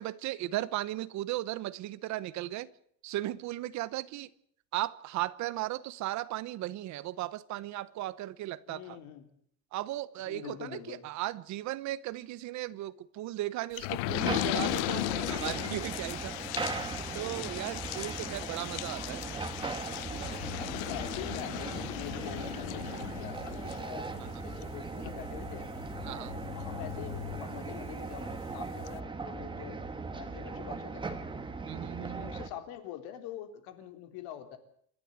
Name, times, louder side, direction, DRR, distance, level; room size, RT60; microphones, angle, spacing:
voice 1, 0.0-2.7 3.0-4.3 4.7-9.0 9.7-19.2 20.1-20.4 26.1-26.3 31.6-32.3, right 15 dB, 45° right, 18 dB, 0.8 m, -36 dB
voice 2, 8.7-9.3 10.3-11.1 18.4-18.5 20.6-25.7 26.1-29.8 30.1-31.2 32.0-34.6, left 11 dB, 65° left, 8 dB, 3.6 m, -45 dB
sound 1, 13.8-28.1 28.5-28.6 28.9-29.0, left 21 dB, 90° left, 0.8 m, -37 dB
sound 2, 14.2-32.5, right 4 dB, 10° right, 1.6 m, -39 dB
27.5 x 12.0 x 9.6 m, 0.65 s
cardioid pair, 160°, 41 cm